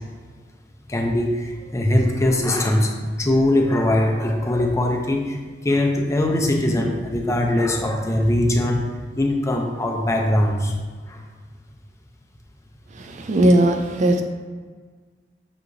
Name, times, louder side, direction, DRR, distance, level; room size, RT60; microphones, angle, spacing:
voice 1, 0.9-8.9 9.2-10.7 11.1-11.2, left 1 dB, 15° left, 2 dB, 0.5 m, -21 dB
voice 2, 12.9-14.2, right 1 dB, 45° right, 5 dB, 0.4 m, -18 dB
6.0 x 2.8 x 2.6 m, 1.5 s
head